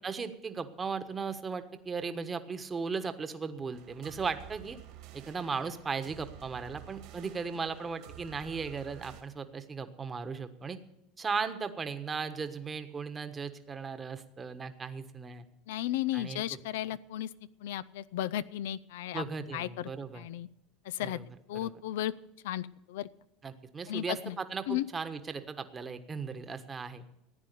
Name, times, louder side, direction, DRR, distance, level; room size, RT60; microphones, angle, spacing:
voice 1, 0.0-4.8 5.1-10.8 11.2-15.4 16.1-16.6 19.1-20.3 21.0-21.2 21.5-21.7 23.4-27.0, right 5 dB, 25° right, 8 dB, 1.3 m, -37 dB
sound 1, 3.7-9.2, right 10 dB, 65° right, 2.5 m, -51 dB
voice 2, 15.7-17.3 17.6-19.2 19.5-19.9 20.1-20.5 20.9-21.2 21.5-22.1 22.4-23.1 23.9-24.4 24.7-24.9, left 13 dB, 75° left, 17 dB, 0.5 m, -34 dB
15.0 x 9.6 x 6.8 m, 0.84 s
hypercardioid pair, 90°, 0 cm